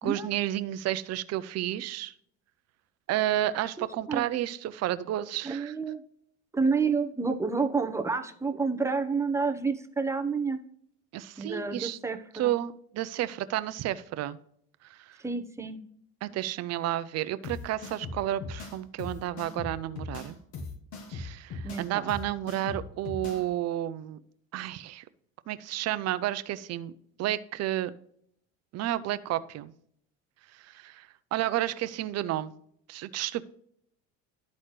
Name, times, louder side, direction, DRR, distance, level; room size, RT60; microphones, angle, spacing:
voice 1, 0.0-2.1 3.1-5.7 11.1-12.0 12.3-14.4 14.8-15.2 16.2-20.4 21.1-24.2 24.5-25.0 25.5-26.9 27.2-27.9 28.7-29.7 30.6-32.5 32.9-33.4, right 13 dB, 50° right, 14 dB, 0.6 m, -31 dB
voice 2, 3.8-4.2 5.4-6.0 6.5-10.6 11.4-12.5 15.2-15.8 21.6-22.1, right 4 dB, 10° right, 5 dB, 0.8 m, -29 dB
sound 1, 17.4-23.4, left 3 dB, 60° left, 1.7 m, -39 dB
12.5 x 4.2 x 3.2 m, 0.67 s
cardioid pair, 115°, 32 cm